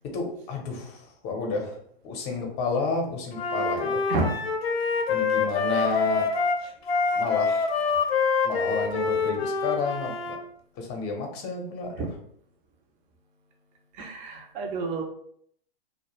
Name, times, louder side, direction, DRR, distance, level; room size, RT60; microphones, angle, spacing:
voice 1, 0.1-1.8 2.0-4.0 5.1-6.3 7.2-7.7 8.4-10.4 10.8-12.1, left 3 dB, 35° left, 2 dB, 0.6 m, -31 dB
Wind instrument woodwind instrument, 3.3-10.4, left 5 dB, 75° left, 0.5 m, -26 dB
voice 2, 13.9-15.0, right 2 dB, 25° right, 2 dB, 0.5 m, -30 dB
2.2 x 2.1 x 3.0 m, 0.67 s
hypercardioid pair, 110°, 31 cm